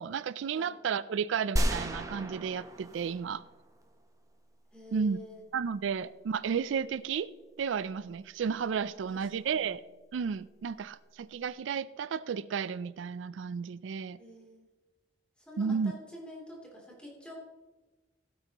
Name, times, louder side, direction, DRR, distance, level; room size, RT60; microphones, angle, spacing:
voice 1, 0.0-3.4 4.9-5.2 5.5-7.3 7.6-9.8 10.1-14.2 15.6-15.9, right 6 dB, 85° right, 17 dB, 0.4 m, -33 dB
sound 1, 1.6-3.8, right 1 dB, 15° right, 0.9 m, -33 dB
voice 2, 4.7-5.4 9.1-9.6 14.2-14.7 15.5-17.3, left 1 dB, 5° left, -3 dB, 3.0 m, -48 dB
16.0 x 8.7 x 3.0 m, 1.2 s
head